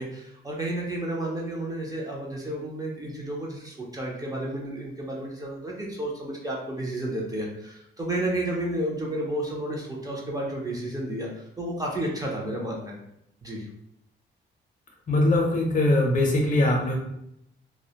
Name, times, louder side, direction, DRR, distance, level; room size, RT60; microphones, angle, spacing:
voice 1, 0.0-12.9 13.4-13.7, right 1 dB, 20° right, -3 dB, 0.4 m, -31 dB
voice 2, 15.1-16.9, left 2 dB, 45° left, 0 dB, 0.5 m, -21 dB
2.3 x 2.1 x 2.7 m, 0.78 s
wide cardioid pair, 165°, 20 cm